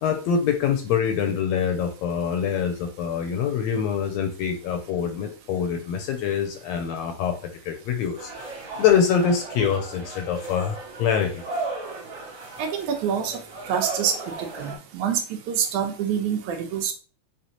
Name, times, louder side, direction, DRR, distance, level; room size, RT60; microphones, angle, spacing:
voice 1, 0.0-8.3 8.8-11.3, left 7 dB, 75° left, 5 dB, 1.6 m, -24 dB
sound 1, 8.2-14.8, right 3 dB, 60° right, 0.8 m, -36 dB
voice 2, 12.6-13.4 13.7-14.1 14.4-16.9, right 8 dB, 80° right, 5 dB, 2.1 m, -26 dB
5.5 x 2.9 x 2.9 m, 0.38 s
omnidirectional pair, 3.4 m